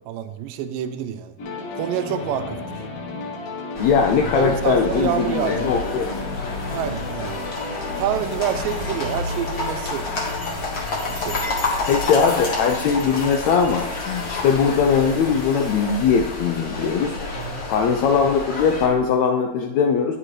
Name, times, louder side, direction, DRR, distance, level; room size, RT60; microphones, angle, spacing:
voice 1, 0.0-1.3 1.7-2.9 4.4-5.7 6.7-7.4 8.0-10.1 11.1-11.4 17.4-17.7, right 10 dB, 85° right, 10 dB, 2.2 m, -27 dB
sound 1, 1.4-15.1, left 3 dB, 60° left, 1.8 m, -35 dB
sound 2, 3.7-18.9, left 3 dB, 45° left, 1.7 m, -29 dB
voice 2, 3.8-6.2 11.9-17.2 17.7-20.2, left 6 dB, 80° left, 3 dB, 1.6 m, -20 dB
9.8 x 8.5 x 3.2 m, 1.1 s
omnidirectional pair, 3.8 m